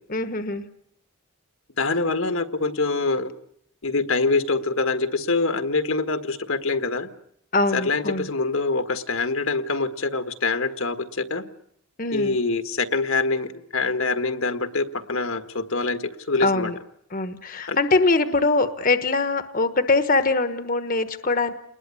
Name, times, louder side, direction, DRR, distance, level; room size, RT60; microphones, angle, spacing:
voice 1, 0.1-0.6 7.5-8.3 12.0-12.4 16.4-16.8 17.1-21.5, left 3 dB, 40° left, 10 dB, 1.2 m, -22 dB
voice 2, 1.8-3.3 3.8-7.1 7.7-11.4 12.1-16.0 16.3-16.7 17.7-17.8, left 3 dB, 70° left, 9 dB, 1.6 m, -25 dB
29.0 x 20.5 x 8.4 m, 0.75 s
head